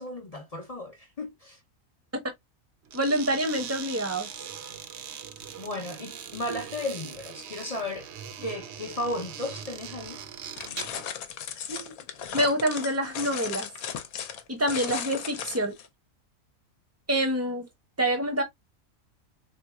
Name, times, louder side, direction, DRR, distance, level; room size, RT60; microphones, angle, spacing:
voice 1, 0.0-1.6 5.6-8.1 8.4-10.2, left 1 dB, 40° left, 0.5 m, -34 dB
voice 2, 2.9-4.3 6.5-6.6 11.7-11.9 12.3-13.7 14.5-15.7 17.1-17.7 18.0-18.4, right 1 dB, 15° right, 0.6 m, -26 dB
sound 1, 2.9-11.1, right 8 dB, 60° right, 0.8 m, -41 dB
sound 2, 10.6-15.9, left 8 dB, 80° left, 1.1 m, -36 dB
3.9 x 2.7 x 2.2 m
omnidirectional pair, 1.5 m